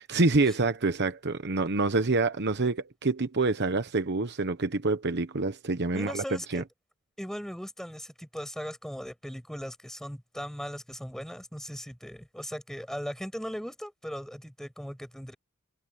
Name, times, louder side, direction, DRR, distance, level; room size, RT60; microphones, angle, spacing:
voice 1, 0.1-6.6, right 3 dB, 50° right, 1.0 m, -27 dB
voice 2, 5.9-6.6 7.2-15.3, equal, ahead, 5.7 m, -38 dB
head